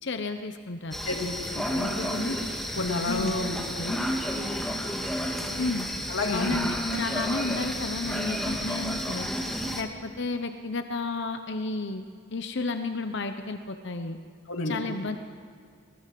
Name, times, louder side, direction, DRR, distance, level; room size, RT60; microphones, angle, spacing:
voice 1, 0.0-1.0 3.1-3.4 5.6-5.9 6.3-9.3 9.7-14.2 14.7-15.2, left 3 dB, 60° left, 7 dB, 1.0 m, -32 dB
sound 1, 0.9-9.8, equal, ahead, 2.2 m, -31 dB
voice 2, 1.0-2.4 2.8-4.0 6.1-6.5 14.5-14.8, left 2 dB, 90° left, 1 dB, 2.4 m, -31 dB
25.0 x 19.5 x 7.8 m, 2.2 s
head